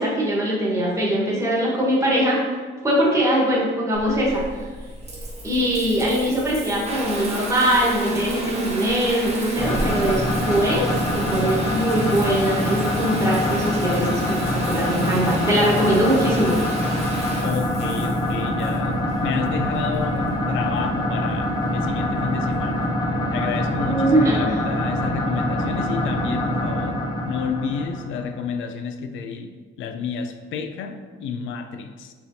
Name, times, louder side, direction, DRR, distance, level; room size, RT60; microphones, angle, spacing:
voice 1, 0.0-2.4 2.8-4.4 5.4-16.6 23.8-24.4, equal, 15° right, -5 dB, 1.2 m, -21 dB
Water tap faucet / Bathtub (filling or washing) / Trickle dribble, 3.9-22.8, right 2 dB, 30° right, 1.1 m, -32 dB
sound 1, 9.6-28.4, left 1 dB, 20° left, 0.6 m, -25 dB
voice 2, 17.4-22.9 23.3-32.1, left 6 dB, 75° left, 7 dB, 0.4 m, -30 dB
4.4 x 3.4 x 2.7 m, 1.5 s
cardioid pair, 90°, 20 cm